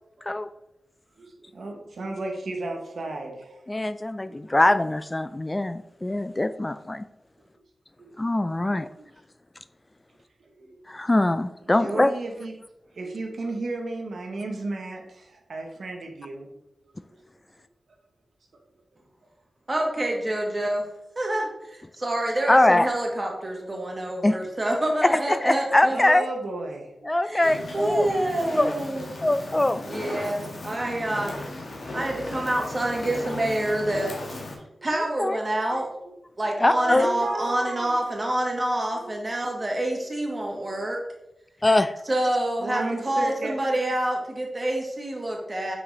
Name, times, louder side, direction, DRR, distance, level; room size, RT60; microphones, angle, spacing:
voice 1, 1.2-3.7 4.3-4.4 8.0-8.3 9.0-9.1 10.4-10.8 11.8-12.5 12.9-16.5 25.9-27.1 27.9-28.1 31.2-31.3 31.6-31.7 36.6-38.0 38.9-39.4 40.5-40.7 42.6-43.5, right 2 dB, 75° right, 2 dB, 1.0 m, -34 dB
voice 2, 3.7-7.0 8.2-8.9 10.9-12.1 22.5-22.9 24.2-24.4 25.0-26.3 27.1-28.1 28.5-28.7 29.2-29.8 35.2-35.4 36.6-37.1 41.6-42.0, left 1 dB, 25° left, 12 dB, 0.3 m, -22 dB
voice 3, 19.7-20.8 21.2-26.0 27.2-29.3 29.9-30.4 30.6-31.3 31.9-34.1 34.8-35.9 36.4-41.0 42.1-45.8, right 1 dB, 35° right, 0 dB, 2.1 m, -27 dB
Fire, 27.4-34.5, left 2 dB, 70° left, 1.6 m, -36 dB
6.0 x 4.8 x 4.1 m, 0.86 s
cardioid pair, 45°, 0 cm